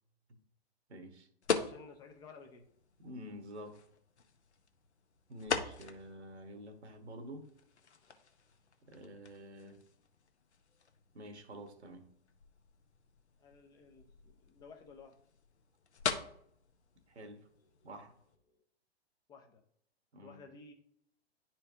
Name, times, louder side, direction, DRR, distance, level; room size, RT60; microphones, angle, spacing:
voice 1, 0.9-1.3 3.0-3.8 5.3-7.5 8.9-9.8 11.1-12.1 17.1-17.4 17.8-18.1 20.1-20.4, equal, 80° right, 6 dB, 1.3 m, -48 dB
sound 1, 1.4-18.4, left 5 dB, 85° left, 0.8 m, -43 dB
voice 2, 1.5-2.7 13.4-15.2 17.8-17.9 18.5-18.6 19.3-19.6 20.2-20.7, left 4 dB, 10° left, 3 dB, 0.4 m, -55 dB
10.0 x 4.3 x 2.7 m, 0.69 s
figure-of-eight pair, 115°, 33 cm